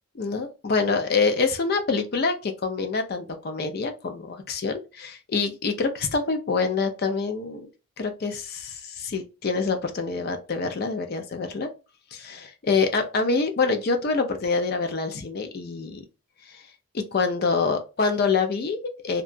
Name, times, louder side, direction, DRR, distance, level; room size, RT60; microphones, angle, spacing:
voice 1, 0.1-7.6 8.0-11.7 12.1-16.0 16.5-16.6 16.9-19.2, left 4 dB, 45° left, 0.4 m, -26 dB
2.8 x 2.2 x 2.5 m
head